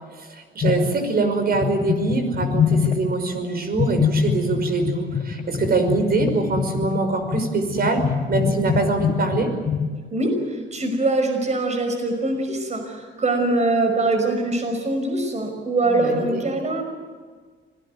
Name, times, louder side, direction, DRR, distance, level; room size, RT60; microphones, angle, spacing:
voice 1, 0.1-9.5 15.8-16.4, right 3 dB, 50° right, 7 dB, 5.7 m, -24 dB
sound 1, 0.6-1.3 1.5-3.3 3.7-9.9, left 6 dB, 40° left, 1.9 m, -24 dB
voice 2, 10.1-16.8, right 2 dB, 35° right, 5 dB, 5.6 m, -23 dB
25.5 x 18.5 x 9.4 m, 1.5 s
cardioid pair, 90°, 20 cm